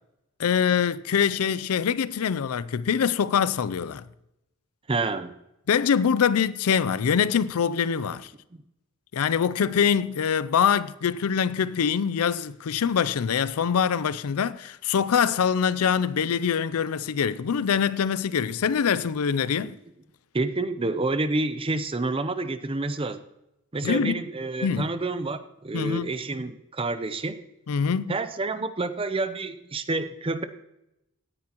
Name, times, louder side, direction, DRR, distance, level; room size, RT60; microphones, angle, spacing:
voice 1, 0.4-4.1 5.7-8.3 9.1-19.7 23.8-24.2 24.6-24.9 25.7-26.1 27.7-28.1, left 7 dB, 85° left, 0.4 m, -24 dB
voice 2, 4.9-5.3 8.5-8.6 19.6-19.7 20.3-23.2 23.7-27.4 28.1-30.4, right 2 dB, 25° right, 0.6 m, -28 dB
17.0 x 9.7 x 3.0 m
head